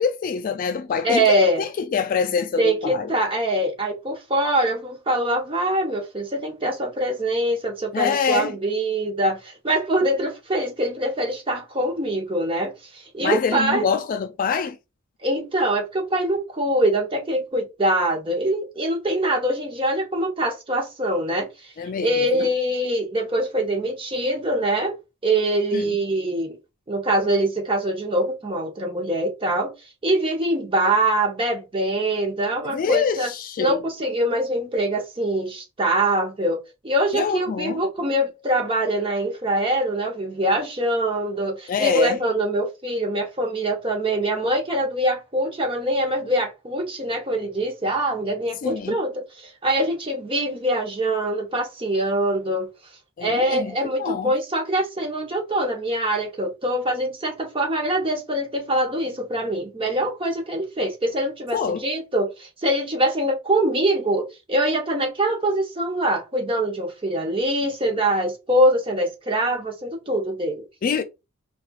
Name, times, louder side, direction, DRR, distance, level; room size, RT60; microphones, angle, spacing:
voice 1, 0.0-3.1 7.9-8.6 13.2-14.8 21.8-22.1 22.3-22.5 25.7-26.0 32.6-33.8 37.1-37.8 41.7-42.2 48.6-49.0 53.2-54.3 61.5-61.8 70.8-71.0, left 6 dB, 40° left, 0.3 m, -25 dB
voice 2, 1.0-1.6 2.6-13.8 15.2-21.5 22.0-24.9 25.2-26.6 26.9-29.7 30.0-33.3 33.6-52.7 53.2-70.6, right 1 dB, 25° right, 0.9 m, -23 dB
4.3 x 2.4 x 2.4 m
head